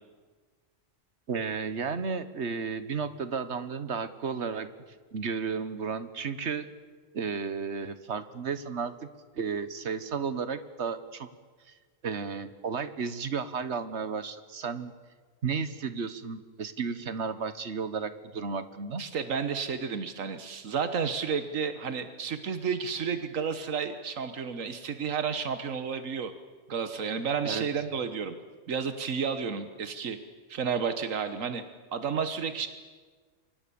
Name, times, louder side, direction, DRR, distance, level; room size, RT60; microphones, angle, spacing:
voice 1, 1.3-4.7 5.1-6.7 7.1-9.1 9.3-11.3 12.0-14.9 15.4-19.0 27.4-27.7, right 5 dB, 60° right, 12 dB, 1.5 m, -33 dB
voice 2, 19.0-26.3 26.7-28.4 28.7-30.2 30.5-31.6 31.9-32.7, right 6 dB, 85° right, 10 dB, 1.5 m, -31 dB
28.0 x 24.5 x 7.0 m, 1.4 s
omnidirectional pair, 1.3 m